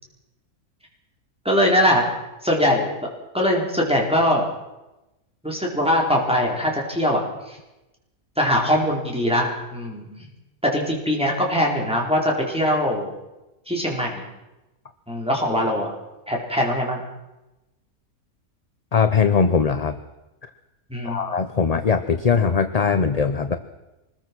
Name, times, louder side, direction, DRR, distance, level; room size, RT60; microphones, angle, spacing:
voice 1, 1.4-2.0 2.4-3.1 3.3-4.5 5.4-7.2 8.4-10.3 10.6-13.1 13.7-14.2 15.1-15.9 16.3-17.0 20.9-21.2, equal, 5° right, -1 dB, 4.3 m, -21 dB
voice 2, 18.9-20.0 21.0-23.6, left 5 dB, 35° left, 9 dB, 0.8 m, -20 dB
24.5 x 20.5 x 6.2 m, 1.0 s
omnidirectional pair, 1.5 m